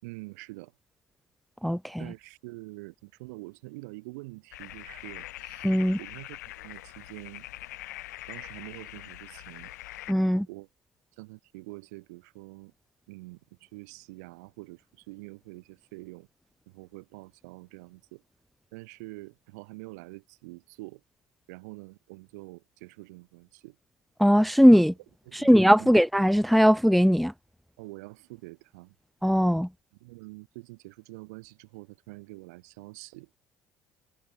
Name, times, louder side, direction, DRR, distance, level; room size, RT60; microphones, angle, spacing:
voice 1, 0.0-0.7 2.0-7.5 8.3-9.7 10.5-10.7 11.2-12.7 13.1-16.3 16.7-18.2 18.7-21.0 21.5-23.8 25.3-25.9 27.8-28.9 30.0-33.3, right 25 dB, 70° right, 7.9 m, -46 dB
voice 2, 1.6-2.1 5.6-6.0 10.1-10.5 24.2-24.9 25.3-27.3 29.2-29.7, equal, ahead, 0.5 m, -20 dB
sound 1, 4.5-10.1, left 17 dB, 75° left, 2.4 m, -43 dB
figure-of-eight pair, 60°, 9 cm